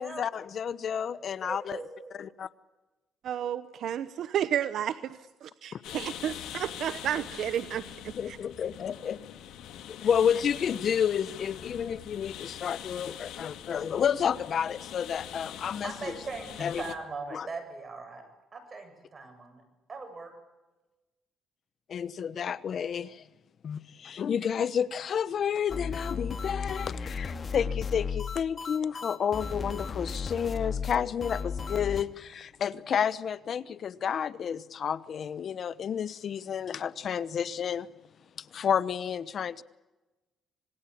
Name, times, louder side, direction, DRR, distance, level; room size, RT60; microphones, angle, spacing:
voice 1, 0.0-1.8 2.1-2.5 5.7-5.8 8.1-9.2 9.9-16.1 16.6-16.8 17.3-17.5 21.9-23.2 23.6-37.9 38.4-39.6, left 8 dB, 55° left, 0.9 m, -30 dB
voice 2, 1.4-2.1 15.8-18.2 18.5-19.6 19.9-20.3, right 4 dB, 35° right, 8.0 m, -40 dB
voice 3, 3.2-8.4, right 10 dB, 75° right, 0.9 m, -32 dB
sound 1, 5.8-17.0, left 11 dB, 85° left, 2.0 m, -43 dB
sound 2, 25.7-32.0, left 5 dB, 40° left, 2.1 m, -34 dB
26.5 x 20.5 x 8.6 m
cardioid pair, 90°, 0 cm